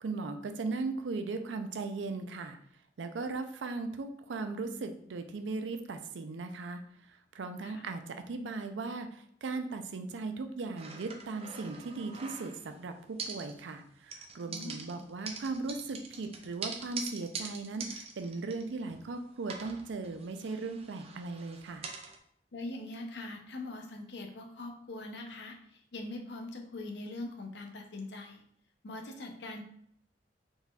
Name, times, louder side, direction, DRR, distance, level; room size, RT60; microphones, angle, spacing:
voice 1, 0.0-2.6 3.0-6.8 7.1-21.9, right 3 dB, 85° right, 7 dB, 0.5 m, -38 dB
sound 1, 10.8-12.8 13.2-13.8 14.1-19.1 19.4-22.2, right 4 dB, 35° right, 0.5 m, -44 dB
voice 2, 14.5-15.0 22.5-28.4 28.8-29.6, left 2 dB, 70° left, 3 dB, 0.7 m, -42 dB
4.0 x 3.9 x 2.4 m, 0.66 s
head